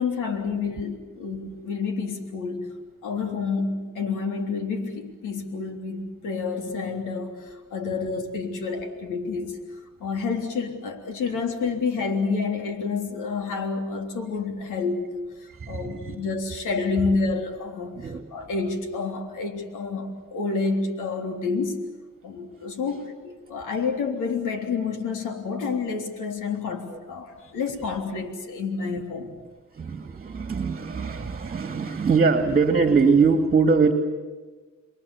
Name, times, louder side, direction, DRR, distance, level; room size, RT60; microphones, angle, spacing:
voice 1, 0.0-2.7 3.0-9.6 10.0-15.2 15.7-21.8 22.2-29.4, left 4 dB, 85° left, 4 dB, 3.5 m, -29 dB
voice 2, 15.6-16.2 17.9-18.2 26.9-27.0 29.7-33.9, right 5 dB, 30° right, 6 dB, 2.3 m, -22 dB
28.5 x 22.5 x 7.2 m, 1.3 s
cardioid pair, 90°, 30 cm